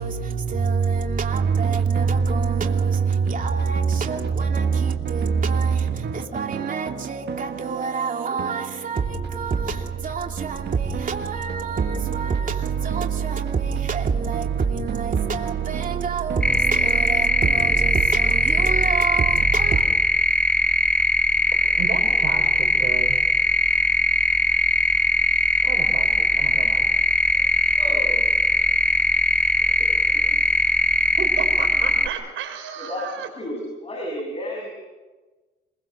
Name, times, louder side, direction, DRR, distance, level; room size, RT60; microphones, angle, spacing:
voice 1, 0.0-19.8, right 5 dB, 45° right, 2.8 m, -25 dB
sound 1, 1.3-19.4, right 8 dB, 60° right, 1.5 m, -35 dB
sound 2, 16.4-32.1, left 1 dB, 5° left, 1.8 m, -20 dB
voice 2, 21.8-23.2 25.6-26.9 31.2-33.3, right 7 dB, 85° right, 5.3 m, -33 dB
voice 3, 27.7-28.2 32.8-33.0 33.3-34.7, left 1 dB, 30° left, 7.4 m, -32 dB
27.5 x 22.0 x 6.9 m
cardioid pair, 90°, 20 cm